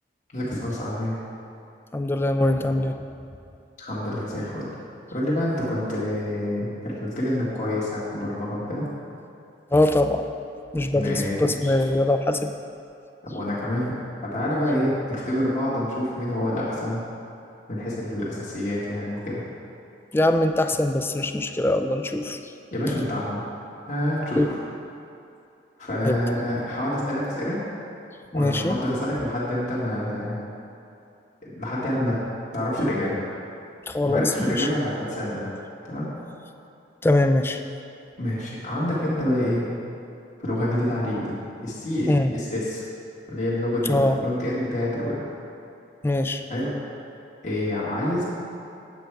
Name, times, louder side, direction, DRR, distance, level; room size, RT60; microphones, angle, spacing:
voice 1, 0.3-1.2 3.8-4.7 5.1-8.9 10.9-11.7 13.2-13.9 14.3-17.0 17.7-19.4 22.7-23.4 23.9-24.6 25.8-27.6 28.3-30.4 31.4-32.2 32.5-33.2 34.0-35.5 35.9-36.1 38.2-39.7 40.4-41.4 41.6-42.8 43.3-45.2 46.5-46.7 47.4-48.2, left 1 dB, 40° left, -8 dB, 1.8 m, -27 dB
voice 2, 1.9-3.0 9.7-10.3 10.7-12.5 20.1-22.4 24.4-24.5 26.0-26.2 28.3-28.8 33.9-34.7 37.0-37.6 42.1-42.4 43.9-44.2 46.0-46.4, left 1 dB, 15° left, 7 dB, 0.3 m, -22 dB
9.2 x 7.8 x 4.7 m, 2.6 s
head